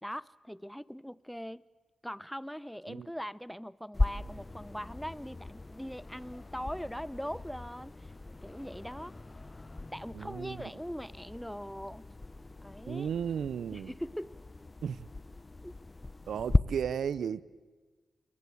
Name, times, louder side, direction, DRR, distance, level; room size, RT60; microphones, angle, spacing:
voice 1, 0.0-1.6 2.0-8.1 8.4-9.1 9.9-12.1 12.6-13.1 13.7-14.4 15.6-15.7, equal, ahead, 0.8 m, -41 dB
sound 1, 3.9-16.6, left 2 dB, 30° left, 0.9 m, -37 dB
voice 2, 10.1-10.6 12.9-13.9 14.8-15.1 16.3-17.4, right 8 dB, 80° right, 0.8 m, -34 dB
27.5 x 22.5 x 8.6 m
cardioid pair, 50°, 0 cm